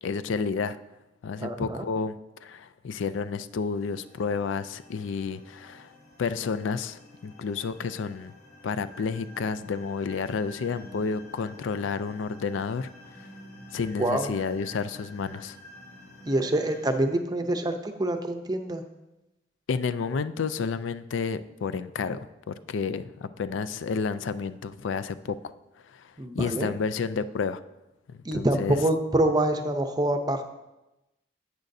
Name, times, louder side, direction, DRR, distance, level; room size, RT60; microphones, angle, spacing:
voice 1, 0.0-0.8 1.2-5.9 6.2-8.3 8.6-13.3 13.7-15.6 19.7-25.5 25.9-27.6 28.1-28.8, left 5 dB, 80° left, 13 dB, 0.4 m, -31 dB
voice 2, 1.4-1.8 14.0-14.3 16.2-18.8 26.2-26.7 28.2-30.4, right 1 dB, 20° right, 7 dB, 0.6 m, -26 dB
sound 1, 3.7-17.0, left 1 dB, 55° left, 2.0 m, -49 dB
10.5 x 8.3 x 2.7 m, 0.98 s
head